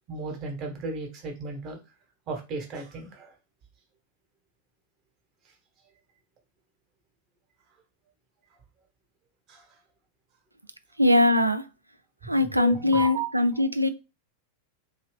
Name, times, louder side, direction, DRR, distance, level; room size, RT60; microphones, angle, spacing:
voice 1, 0.1-1.8 2.3-3.3 9.5-9.6 12.2-13.6, right 4 dB, 35° right, 1.1 m, -35 dB
voice 2, 11.0-11.6 12.2-13.9, left 2 dB, 85° right, 0.3 m, -21 dB
2.8 x 2.6 x 3.2 m
figure-of-eight pair, 90°, 0 cm